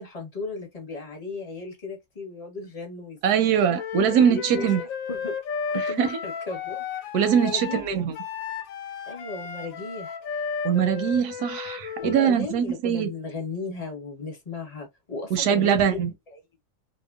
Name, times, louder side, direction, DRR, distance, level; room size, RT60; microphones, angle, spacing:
voice 1, 0.0-3.2 3.7-3.8 4.0-5.4 5.7-7.9 9.1-10.5 12.0-15.8 16.3-16.4, left 3 dB, 30° left, 0.8 m, -36 dB
voice 2, 3.2-4.8 6.0-6.2 7.1-8.1 10.6-13.1 15.3-16.1, right 8 dB, 85° right, 1.2 m, -22 dB
Wind instrument woodwind instrument, 3.8-12.3, left 6 dB, 65° left, 1.0 m, -33 dB
2.8 x 2.1 x 2.2 m
omnidirectional pair, 1.6 m